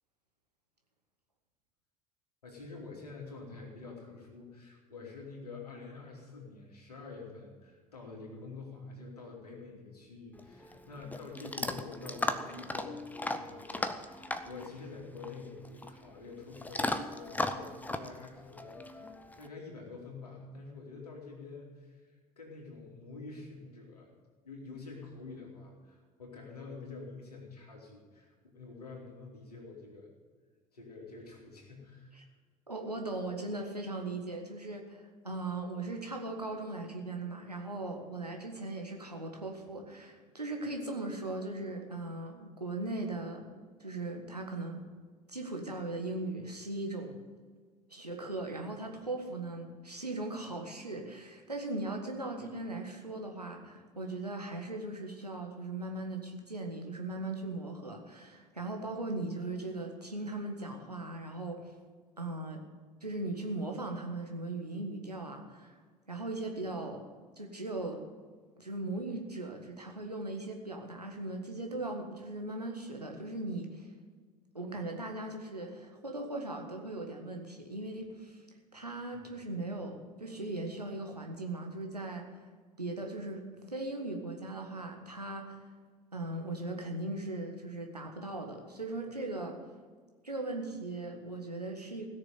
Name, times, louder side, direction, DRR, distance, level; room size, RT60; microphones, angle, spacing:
voice 1, 2.4-24.1 24.4-30.1 30.7-32.3 79.1-79.4, left 3 dB, 80° left, -1 dB, 3.1 m, -47 dB
Chewing mastication / Dog, 10.3-19.5, left 2 dB, 10° left, 0.9 m, -37 dB
voice 2, 32.7-43.4 43.8-44.8 45.3-47.2 47.9-61.6 62.2-62.6 63.0-65.8 66.1-67.0 67.4-68.0 68.6-73.9 74.5-78.4 78.7-82.2 82.8-85.6 86.1-89.6 90.2-92.1, right 2 dB, 90° right, 2 dB, 1.7 m, -38 dB
16.5 x 6.8 x 9.3 m, 1.5 s
figure-of-eight pair, 65°, 20 cm